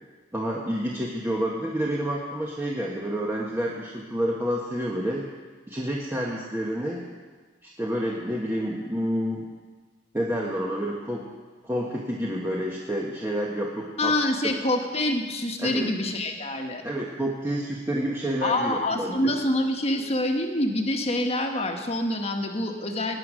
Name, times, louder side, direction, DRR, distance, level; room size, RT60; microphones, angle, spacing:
voice 1, 0.3-5.2 5.7-7.0 7.6-9.5 10.1-11.3 11.6-14.1 15.6-15.9 16.8-19.3, equal, 10° right, -3 dB, 1.2 m, -29 dB
voice 2, 14.0-16.8 18.4-23.2, left 1 dB, 35° left, 4 dB, 1.4 m, -26 dB
18.0 x 9.6 x 6.3 m, 1.4 s
head